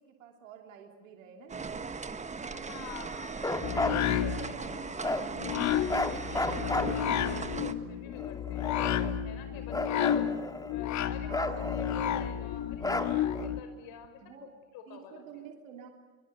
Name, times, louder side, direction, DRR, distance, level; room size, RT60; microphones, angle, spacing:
voice 1, 0.0-3.0 4.5-4.6 9.5-10.3 11.3-11.8 14.2-14.5 14.9-15.9, right 8 dB, 80° right, 3 dB, 3.3 m, -51 dB
sound 1, 1.5-7.7, right 4 dB, 20° right, 1.5 m, -38 dB
voice 2, 2.5-3.3 3.6-8.7 9.2-10.3 10.7-15.2, left 7 dB, 60° left, 8 dB, 6.0 m, -48 dB
Bark, 3.4-4.0 5.0-5.3 5.9-7.3 8.1-9.2 9.7-10.8 11.3-12.3 12.8-13.5, left 2 dB, 10° left, 2.0 m, -33 dB
sound 2, 3.6-13.6, left 10 dB, 45° left, 1.5 m, -32 dB
24.0 x 24.0 x 8.1 m, 1.3 s
hypercardioid pair, 75°, 39 cm